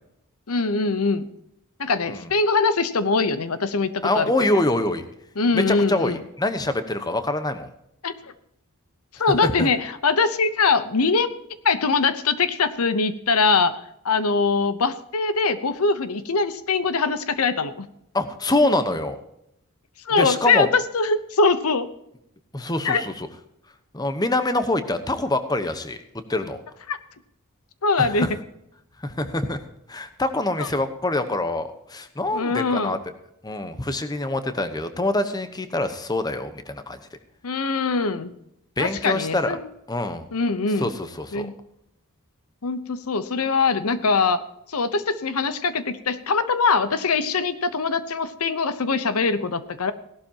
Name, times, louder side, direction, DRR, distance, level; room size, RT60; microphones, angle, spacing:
voice 1, 0.5-1.3 1.8-4.3 5.4-6.2 8.0-8.1 9.2-11.3 11.6-13.8 14.0-17.9 20.1-21.9 22.8-23.0 26.9-27.0 27.8-28.3 30.6-30.7 32.3-33.0 37.4-38.3 38.8-39.6 40.3-40.9 41.3-41.5 42.6-44.4 44.7-49.9, left 4 dB, 80° left, 12 dB, 0.9 m, -22 dB
voice 2, 4.0-5.0 5.5-7.7 9.3-9.7 18.1-19.2 20.2-20.7 22.5-23.3 23.9-26.0 26.3-26.6 28.0-28.3 29.0-29.6 29.9-33.0 33.4-37.0 38.8-39.5 39.9-40.3 40.8-41.5, left 2 dB, 20° left, 9 dB, 1.0 m, -25 dB
17.0 x 12.0 x 2.9 m, 0.78 s
head